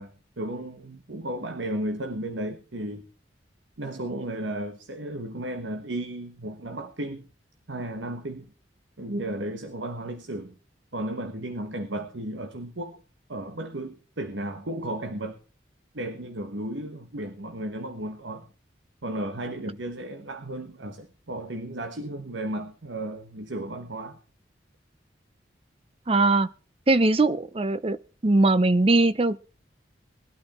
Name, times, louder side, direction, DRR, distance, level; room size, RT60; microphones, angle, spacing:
voice 1, 0.0-3.1 3.8-7.3 7.7-8.5 9.0-10.5 10.9-13.0 13.3-15.4 15.9-18.5 19.0-24.2, right 1 dB, 80° right, 1.3 m, -34 dB
voice 2, 26.1-26.5 26.9-28.0 28.2-29.4, right 2 dB, 30° right, 0.6 m, -20 dB
19.5 x 12.0 x 4.3 m
head